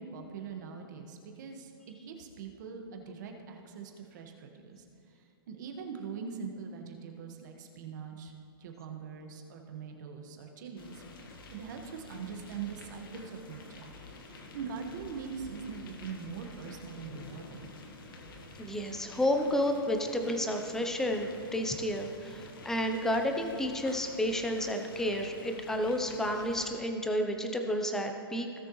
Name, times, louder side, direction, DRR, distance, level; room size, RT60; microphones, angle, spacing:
voice 1, 0.0-4.8 5.5-11.0 11.5-17.7, right 6 dB, 50° right, 3 dB, 1.5 m, -42 dB
sound 1, 10.8-26.7, left 3 dB, 65° left, 1.6 m, -49 dB
voice 2, 18.6-28.7, left 1 dB, 5° left, 5 dB, 0.6 m, -31 dB
17.5 x 6.6 x 3.1 m, 2.3 s
hypercardioid pair, 150°, 12 cm